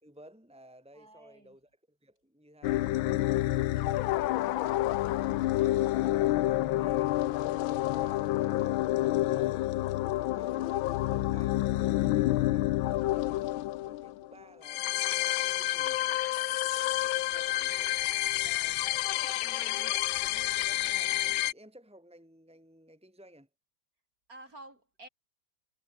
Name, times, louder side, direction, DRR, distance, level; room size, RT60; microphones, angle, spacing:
voice 1, 0.0-3.3 3.8-8.9 9.3-9.7 10.2-13.3 13.8-18.0 18.3-18.8 19.3-23.5, right 1 dB, 5° right, 3.6 m, -55 dB
voice 2, 0.9-1.6 3.3-4.4 24.3-25.1, right 2 dB, 40° right, 7.3 m, -53 dB
sound 1, 2.6-21.5, left 16 dB, 80° left, 1.4 m, -29 dB
omnidirectional pair, 2.3 m